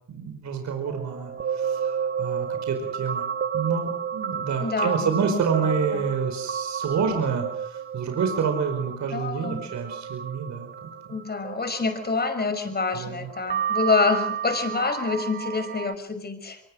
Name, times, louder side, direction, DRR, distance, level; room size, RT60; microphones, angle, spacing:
voice 1, 0.1-3.2 3.5-10.7 12.9-13.3, right 6 dB, 65° right, 5 dB, 5.0 m, -28 dB
sound 1, 0.9-12.7 13.3-15.9, right 7 dB, 35° right, 0.9 m, -31 dB
voice 2, 4.6-5.2 5.9-6.0 9.1-9.6 11.1-16.6, left 4 dB, 30° left, 8 dB, 5.6 m, -27 dB
24.0 x 23.0 x 6.4 m, 0.66 s
cardioid pair, 90°, 30 cm